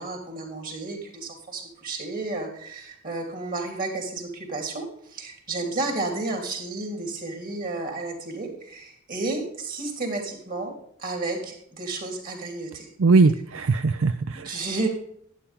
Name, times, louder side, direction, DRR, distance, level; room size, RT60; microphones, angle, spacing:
voice 1, 0.0-10.7 11.0-12.9 14.3-14.9, right 2 dB, 45° right, 2 dB, 3.1 m, -32 dB
voice 2, 13.0-14.5, right 3 dB, 85° right, 10 dB, 0.5 m, -20 dB
11.5 x 10.5 x 3.6 m, 0.67 s
head